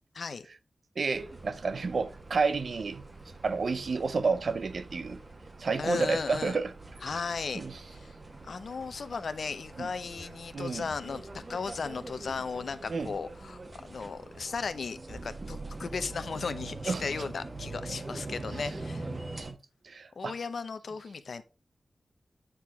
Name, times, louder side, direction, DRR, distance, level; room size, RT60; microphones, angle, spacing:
voice 1, 0.1-0.5 5.8-6.6 7.0-8.1 8.4-19.1 20.2-21.4, left 5 dB, 75° left, 0.7 m, -36 dB
voice 2, 1.0-3.0 3.4-5.2 5.6-6.7 7.5-7.7 9.8-9.9 10.5-10.9 12.9-13.1 16.9-17.1 19.3-19.6 19.8-20.3, right 4 dB, 70° right, 0.6 m, -30 dB
sound 1, 1.1-19.5, right 2 dB, 35° right, 1.2 m, -44 dB
8.8 x 4.8 x 3.6 m
wide cardioid pair, 110°, 0 cm